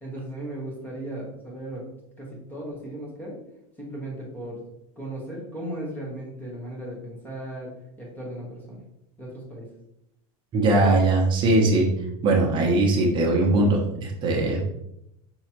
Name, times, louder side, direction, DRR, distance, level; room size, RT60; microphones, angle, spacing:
voice 1, 0.0-1.9 2.2-3.4 3.8-4.6 5.0-8.8 9.2-9.7, right 1 dB, 10° left, -3 dB, 1.2 m, -36 dB
voice 2, 10.5-11.9 12.2-14.8, right 2 dB, 25° right, 0 dB, 0.8 m, -20 dB
5.5 x 3.1 x 3.0 m, 0.81 s
supercardioid pair, 165°, 19 cm